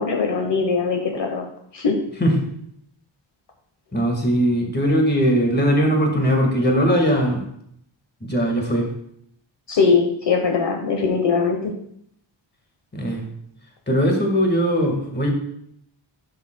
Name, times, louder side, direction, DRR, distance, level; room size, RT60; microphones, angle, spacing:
voice 1, 0.0-1.4 1.7-2.0 9.7-11.7, left 5 dB, 60° left, 2 dB, 1.1 m, -21 dB
voice 2, 3.9-7.4 8.2-8.9 12.9-13.3 13.9-15.3, equal, 20° left, 1 dB, 1.7 m, -19 dB
11.5 x 6.7 x 2.2 m, 0.70 s
wide cardioid pair, 120°, 47 cm